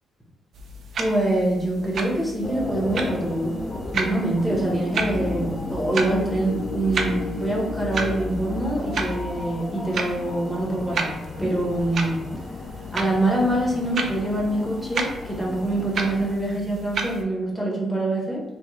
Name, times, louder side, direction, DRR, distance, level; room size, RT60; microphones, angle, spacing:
sound 1, 0.5-17.2, right 3 dB, 55° right, 0.4 m, -33 dB
voice 1, 1.0-3.6 3.9-12.3 12.9-18.4, right 1 dB, 5° left, -4 dB, 0.9 m, -25 dB
sound 2, 2.4-16.3, left 2 dB, 30° left, 0.3 m, -33 dB
3.3 x 2.1 x 2.9 m, 0.98 s
cardioid pair, 130°, 0 cm